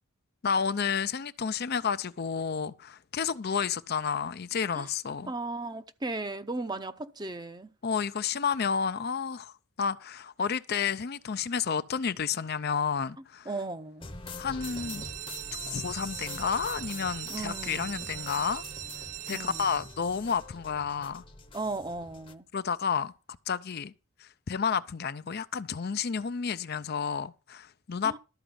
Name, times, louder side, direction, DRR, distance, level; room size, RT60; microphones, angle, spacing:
voice 1, 0.4-5.3 7.8-13.5 14.4-15.1 15.7-18.6 19.3-21.2 22.5-23.1 23.5-23.9 24.2-28.2, left 6 dB, 45° left, 0.5 m, -31 dB
voice 2, 5.3-7.7 13.5-14.1 17.3-18.1 19.3-19.8 21.5-22.5 28.0-28.2, right 2 dB, 20° right, 0.7 m, -36 dB
sound 1, 14.0-22.3, left 3 dB, 25° left, 0.9 m, -44 dB
sound 2, 14.6-20.2 20.8-21.3 21.7-21.8 22.1-22.2 22.6-22.7, right 13 dB, 80° right, 1.0 m, -40 dB
13.0 x 4.9 x 7.8 m
head